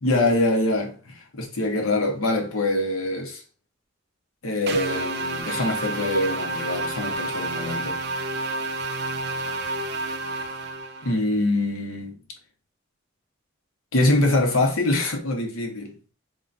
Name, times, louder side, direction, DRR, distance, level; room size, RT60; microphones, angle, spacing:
voice 1, 0.0-3.4 4.4-8.0 11.0-12.2 13.9-16.0, left 2 dB, 80° left, 0.9 m, -24 dB
sound 1, 4.7-11.2, right 2 dB, 50° right, 0.5 m, -29 dB
3.7 x 3.1 x 2.6 m
head